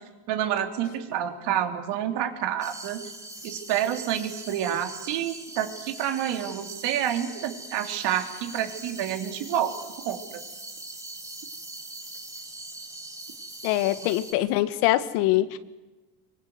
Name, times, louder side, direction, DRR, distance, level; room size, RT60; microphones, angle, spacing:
voice 1, 0.3-3.0 3.4-9.7 10.1-10.2, right 10 dB, 70° right, 4 dB, 3.5 m, -28 dB
sound 1, 2.6-14.3, right 2 dB, 10° right, 4.2 m, -42 dB
voice 2, 13.6-15.6, left 15 dB, 90° left, 12 dB, 1.6 m, -23 dB
26.0 x 24.0 x 8.1 m, 1.1 s
cardioid pair, 135°, 43 cm